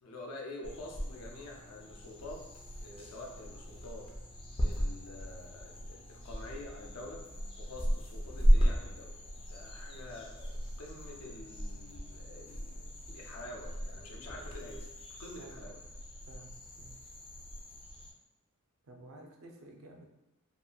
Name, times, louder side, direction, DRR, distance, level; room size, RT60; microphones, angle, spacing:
voice 1, 0.0-2.5 2.8-4.1 4.6-7.2 7.6-9.2 9.5-12.8 13.1-14.9 15.2-15.8, left 2 dB, 80° left, 0 dB, 0.5 m, -47 dB
sound 1, 0.6-18.1, equal, 25° left, 0.4 m, -35 dB
voice 2, 16.3-17.0 18.8-20.1, right 2 dB, 65° right, 2 dB, 0.4 m, -52 dB
2.8 x 2.5 x 2.2 m, 0.96 s
head